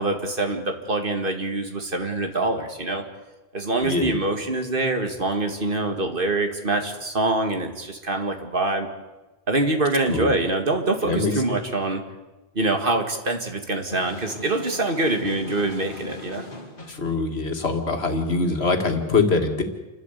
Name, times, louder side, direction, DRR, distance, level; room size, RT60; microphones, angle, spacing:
voice 1, 0.0-3.0 3.5-8.9 9.5-12.0 12.5-16.4, right 2 dB, 60° right, 5 dB, 2.2 m, -25 dB
voice 2, 3.8-4.2 10.1-10.3 11.0-11.3 16.9-19.6, left 3 dB, 85° left, 4 dB, 2.4 m, -23 dB
sound 1, 13.9-17.1, left 2 dB, 55° left, 2.6 m, -39 dB
29.0 x 12.5 x 8.2 m, 1.1 s
omnidirectional pair, 1.0 m